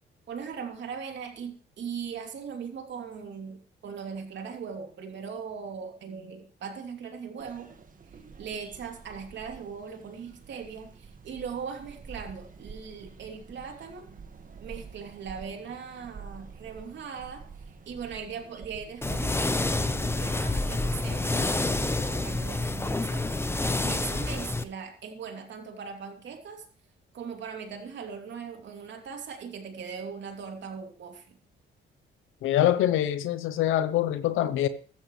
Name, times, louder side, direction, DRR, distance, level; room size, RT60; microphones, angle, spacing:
voice 1, 0.3-7.7 8.4-14.1 14.6-17.4 17.8-26.6 27.1-31.2, right 6 dB, 65° right, 2.9 m, -39 dB
sound 1, 7.4-23.9, right 5 dB, 40° right, 1.7 m, -48 dB
sound 2, 19.0-24.6, left 2 dB, 10° left, 0.9 m, -28 dB
voice 2, 32.4-34.7, left 12 dB, 90° left, 0.8 m, -24 dB
15.0 x 13.5 x 3.2 m
cardioid pair, 90°, 20 cm